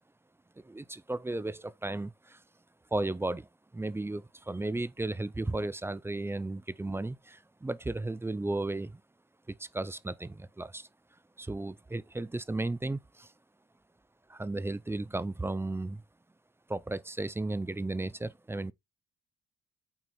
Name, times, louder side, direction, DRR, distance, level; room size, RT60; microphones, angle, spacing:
voice 1, 0.6-2.4 2.9-3.5 3.7-9.0 9.5-10.9 11.4-13.3 14.3-16.0 16.7-18.7, right 2 dB, 10° right, 0.3 m, -34 dB
9.1 x 4.3 x 2.9 m
cardioid pair, 90°, 30 cm